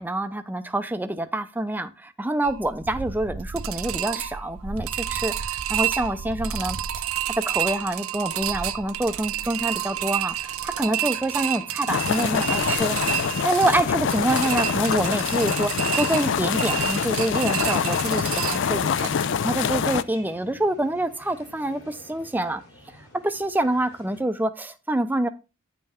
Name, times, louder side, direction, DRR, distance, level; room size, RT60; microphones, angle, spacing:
voice 1, 0.0-6.8 7.5-22.6 23.2-25.3, right 1 dB, 10° right, 0.5 m, -26 dB
sound 1, 2.4-19.1, right 11 dB, 75° right, 0.6 m, -30 dB
sound 2, 9.4-24.2, left 1 dB, 90° left, 3.0 m, -48 dB
sound 3, 11.9-20.0, left 7 dB, 55° left, 0.4 m, -25 dB
10.0 x 5.5 x 3.5 m
head